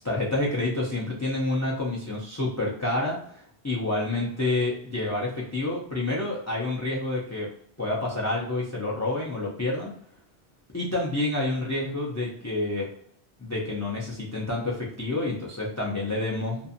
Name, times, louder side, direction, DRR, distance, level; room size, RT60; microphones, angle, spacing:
voice 1, 0.0-7.5 7.8-9.9 10.7-12.9 13.4-16.6, left 2 dB, 25° left, -4 dB, 0.3 m, -28 dB
2.5 x 2.4 x 2.6 m, 0.64 s
omnidirectional pair, 1.1 m